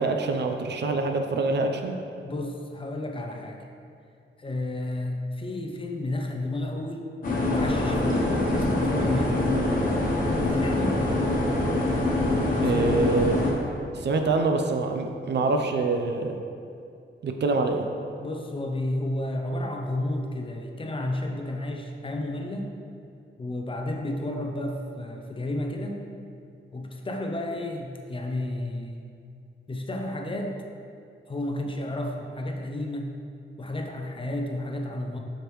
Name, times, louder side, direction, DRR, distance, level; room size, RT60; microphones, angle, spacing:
voice 1, 0.0-1.9 12.6-13.4 13.9-16.3 17.2-17.8, right 3 dB, 60° right, 5 dB, 0.6 m, -25 dB
voice 2, 2.2-3.7 4.4-7.1 7.5-8.2 8.5-9.4 10.5-11.1 12.5-13.4 18.2-22.7 23.4-26.1 26.7-29.1 29.7-30.6 31.3-33.1 33.6-35.2, left 1 dB, 25° left, 2 dB, 0.5 m, -32 dB
sound 1, 7.2-13.5, left 1 dB, 45° left, 1.2 m, -24 dB
7.8 x 6.5 x 3.1 m, 2.5 s
wide cardioid pair, 180°, 20 cm